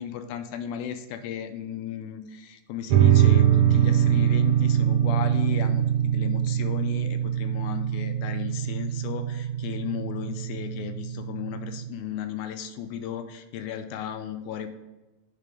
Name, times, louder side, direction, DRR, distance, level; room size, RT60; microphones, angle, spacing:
voice 1, 0.0-14.7, left 9 dB, 80° left, 8 dB, 1.9 m, -35 dB
sound 1, 2.9-11.9, right 10 dB, 75° right, 1.6 m, -23 dB
8.3 x 3.8 x 5.2 m, 1.1 s
omnidirectional pair, 3.9 m